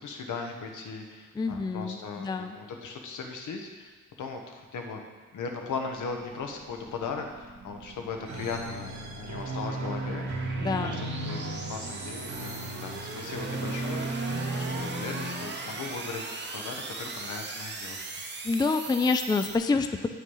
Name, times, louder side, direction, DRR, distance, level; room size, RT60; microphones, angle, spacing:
voice 1, 0.0-3.9 4.2-5.0 5.3-10.5 10.8-18.0, left 4 dB, 75° left, 3 dB, 1.3 m, -38 dB
voice 2, 1.3-2.6 10.6-11.0 18.4-20.1, left 4 dB, 15° left, 8 dB, 0.4 m, -27 dB
sound 1, 5.7-19.6, right 3 dB, 35° right, 1.0 m, -40 dB
sound 2, 8.3-15.9, right 2 dB, 65° right, 1.7 m, -35 dB
8.3 x 6.4 x 5.5 m, 1.4 s
cardioid pair, 120°, 30 cm